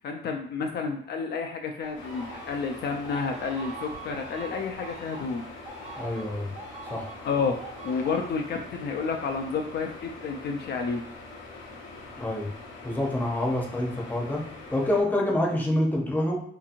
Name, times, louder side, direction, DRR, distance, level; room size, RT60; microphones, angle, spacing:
voice 1, 0.0-5.7 7.2-11.0, left 5 dB, 55° left, 3 dB, 0.4 m, -30 dB
sound 1, 1.8-8.6, right 3 dB, 35° right, 0.8 m, -43 dB
sound 2, 2.0-15.0, left 3 dB, 80° left, 0.8 m, -44 dB
voice 2, 6.0-6.5 6.9-7.1 12.2-12.5 12.8-14.4 14.7-16.4, left 1 dB, 10° left, -1 dB, 0.7 m, -26 dB
2.8 x 2.6 x 2.5 m, 0.63 s
cardioid pair, 90°, 20 cm